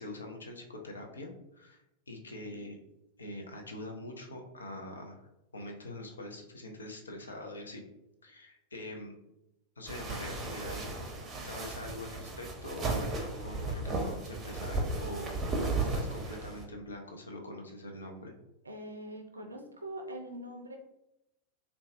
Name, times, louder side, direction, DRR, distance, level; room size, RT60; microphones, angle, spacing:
voice 1, 0.0-2.8 3.2-5.2 5.5-7.8 8.2-9.2 9.8-11.2 11.4-18.3, left 1 dB, 75° left, 2 dB, 0.5 m, -44 dB
sound 1, 9.9-16.6, right 3 dB, 25° right, 0.6 m, -35 dB
voice 2, 18.6-20.8, right 1 dB, 80° right, 4 dB, 0.4 m, -43 dB
3.8 x 2.3 x 2.5 m, 0.90 s
figure-of-eight pair, 90°, 0 cm